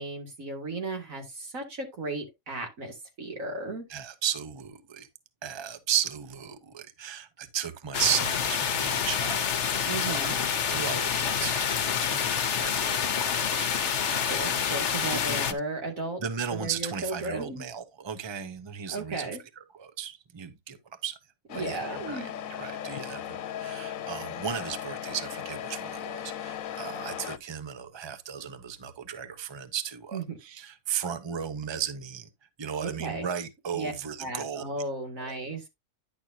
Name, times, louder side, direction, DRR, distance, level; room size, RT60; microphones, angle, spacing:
voice 1, 0.0-3.9 9.9-10.4 14.1-16.2 16.5-17.6 18.9-19.4 21.5-22.3 30.1-30.4 32.8-33.3 33.7-33.9 34.2-35.7, right 2 dB, 85° right, 2.7 m, -35 dB
voice 2, 3.9-5.1 5.4-9.5 10.0-10.3 10.7-13.7 14.1-14.3 15.1-15.4 16.2-19.3 19.7-20.8 21.0-21.2 21.5-32.3 32.6-34.6 35.2-35.4, right 8 dB, 25° right, 0.8 m, -35 dB
sound 1, 7.9-15.5, left 7 dB, 60° left, 1.1 m, -27 dB
Truck, 21.5-27.4, left 10 dB, 85° left, 1.1 m, -37 dB
10.5 x 6.2 x 2.7 m
omnidirectional pair, 1.4 m